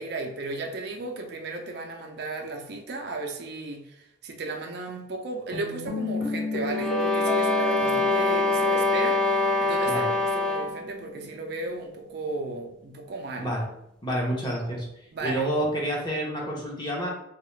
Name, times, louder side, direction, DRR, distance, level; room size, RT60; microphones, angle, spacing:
voice 1, 0.0-13.5 15.1-15.4, right 3 dB, 60° right, 3 dB, 0.4 m, -35 dB
sound 1, 5.5-11.2, left 1 dB, 85° left, 1.2 m, -33 dB
sound 2, 6.7-10.9, left 3 dB, 5° left, 0.3 m, -24 dB
voice 2, 14.0-17.1, right 1 dB, 25° left, -2 dB, 0.8 m, -29 dB
3.5 x 2.3 x 3.1 m, 0.79 s
head